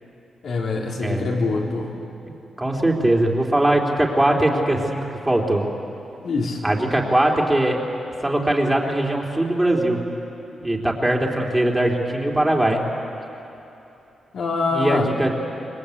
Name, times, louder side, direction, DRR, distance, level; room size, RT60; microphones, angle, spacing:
voice 1, 0.4-1.9 6.2-6.6 14.3-15.1, left 3 dB, 70° left, -2 dB, 4.0 m, -24 dB
voice 2, 1.0-1.5 2.6-5.7 6.6-7.8 8.2-10.0 10.6-12.8 14.7-15.3, right 1 dB, 15° right, -1 dB, 3.4 m, -21 dB
26.5 x 21.0 x 8.6 m, 2.9 s
cardioid pair, 80°, 0 cm